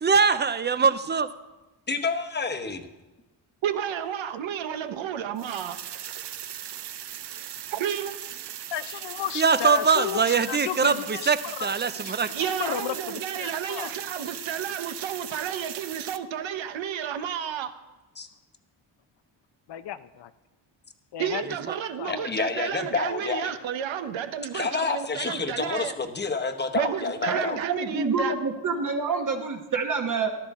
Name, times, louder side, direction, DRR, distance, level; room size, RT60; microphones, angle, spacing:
voice 1, 0.0-1.3 9.4-12.3, right 5 dB, 25° right, 0.4 m, -22 dB
voice 2, 1.9-2.9 18.2-18.3 22.1-23.5 24.5-27.6, left 4 dB, 25° left, 1.0 m, -29 dB
voice 3, 3.6-5.8 7.7-8.1 12.3-17.7 21.2-25.9 26.7-28.3 29.1-29.2, right 9 dB, 85° right, 1.0 m, -31 dB
sound 1, 5.4-16.2, right 10 dB, 65° right, 0.7 m, -38 dB
voice 4, 8.7-13.9 19.7-20.3 21.1-21.4 22.0-22.4, left 11 dB, 65° left, 0.7 m, -34 dB
voice 5, 27.3-30.3, right 4 dB, 45° right, 1.2 m, -27 dB
14.5 x 12.5 x 3.6 m
wide cardioid pair, 140°, 45 cm